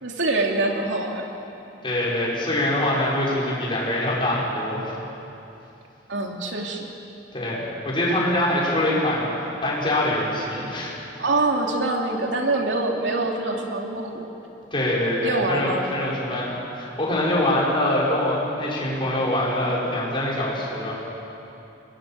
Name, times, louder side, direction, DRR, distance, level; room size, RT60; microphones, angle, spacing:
voice 1, 0.0-1.3 6.1-6.9 11.2-14.3 15.2-15.8, right 2 dB, 90° right, 1 dB, 3.1 m, -25 dB
voice 2, 1.8-5.0 7.3-9.3 9.6-10.9 14.7-20.9, left 1 dB, 30° left, -6 dB, 6.4 m, -24 dB
26.0 x 21.0 x 7.8 m, 2.9 s
head